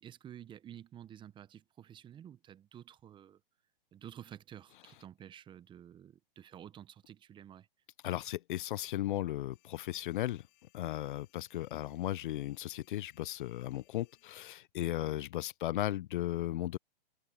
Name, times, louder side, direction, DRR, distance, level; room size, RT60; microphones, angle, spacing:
voice 1, 0.0-3.4 3.9-7.7 14.8-15.1, right 10 dB, 15° right, 0.9 m, -51 dB
voice 2, 8.0-10.5 10.7-16.8, left 14 dB, 60° left, 0.5 m, -36 dB
sound 1, 9.5-14.5, left 31 dB, 40° left, 3.6 m, -70 dB
hypercardioid pair, 130°, 30 cm